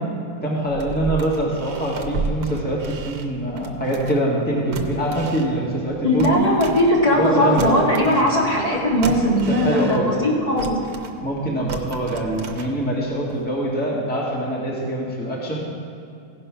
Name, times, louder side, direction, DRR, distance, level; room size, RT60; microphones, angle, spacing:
voice 1, 0.4-6.5 7.1-7.8 8.1-8.3 9.5-10.1 11.2-15.7, right 1 dB, 5° left, -5 dB, 1.4 m, -24 dB
sound 1, 0.6-4.4 4.7-7.3 7.6-10.2 10.6-13.1 13.4-13.5, right 4 dB, 80° right, 1.3 m, -33 dB
voice 2, 6.0-10.8, left 1 dB, 25° left, -6 dB, 1.7 m, -19 dB
16.0 x 5.5 x 5.7 m, 2.5 s
omnidirectional pair, 1.6 m